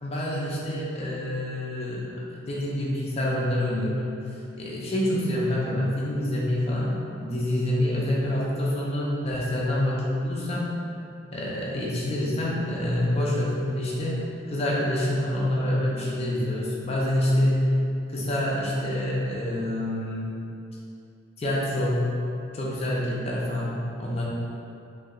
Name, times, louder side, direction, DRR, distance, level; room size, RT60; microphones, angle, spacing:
voice 1, 0.0-4.3 4.6-10.8 11.3-17.7 18.1-20.4 21.4-22.2 22.5-24.2, left 1 dB, 35° left, -6 dB, 0.5 m, -27 dB
3.2 x 2.7 x 2.4 m, 2.6 s
head